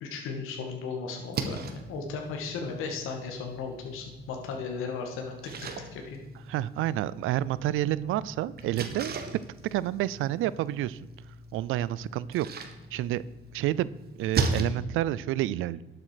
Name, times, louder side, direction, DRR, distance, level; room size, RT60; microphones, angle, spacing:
voice 1, 0.0-6.2, left 4 dB, 80° left, 2 dB, 1.9 m, -36 dB
Splash splatter, 1.1-14.6, right 4 dB, 50° right, 1.5 m, -38 dB
voice 2, 6.5-9.2 9.7-11.0 11.5-12.5 12.9-13.2 13.5-13.9 14.2-15.8, right 14 dB, 75° right, 19 dB, 0.5 m, -29 dB
12.0 x 7.6 x 5.0 m, 1.2 s
cardioid pair, 100°, 21 cm